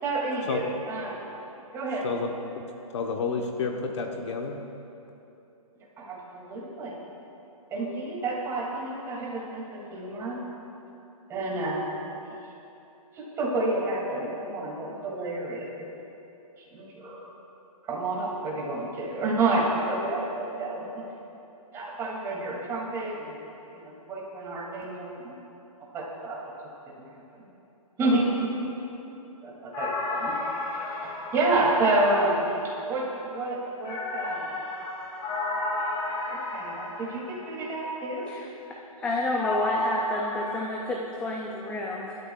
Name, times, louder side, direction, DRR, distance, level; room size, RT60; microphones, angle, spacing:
voice 1, 0.0-1.1 1.7-2.1 6.0-6.9 7.7-10.4 11.3-11.8 13.1-15.7 16.6-17.3 17.8-20.9 21.7-23.4 23.7-25.3 25.9-26.4 27.1-27.2 28.0-28.7 29.4-30.3 30.9-34.5 36.3-38.3, right 2 dB, 15° right, -4 dB, 2.6 m, -29 dB
voice 2, 2.9-4.6, left 4 dB, 50° left, 3 dB, 1.1 m, -30 dB
sound 1, 29.7-32.6 33.8-37.7 39.3-40.7, left 2 dB, 25° left, 2.4 m, -32 dB
voice 3, 38.3-42.2, left 2 dB, 5° left, -1 dB, 0.5 m, -30 dB
24.5 x 12.5 x 2.4 m, 2.9 s
hypercardioid pair, 150°, 19 cm